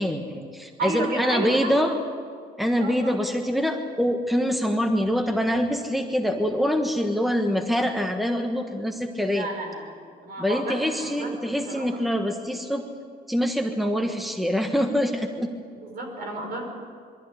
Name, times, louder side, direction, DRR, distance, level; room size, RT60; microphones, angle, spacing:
voice 1, 0.0-1.9 2.6-9.5 10.4-12.8 13.3-15.5, equal, ahead, 5 dB, 1.4 m, -25 dB
voice 2, 0.8-1.7 2.6-3.2 9.3-9.9 10.2-11.3 11.7-11.9 15.8-16.6, right 2 dB, 60° right, 3 dB, 5.7 m, -31 dB
22.5 x 14.5 x 9.9 m, 2.1 s
cardioid pair, 110°, 17 cm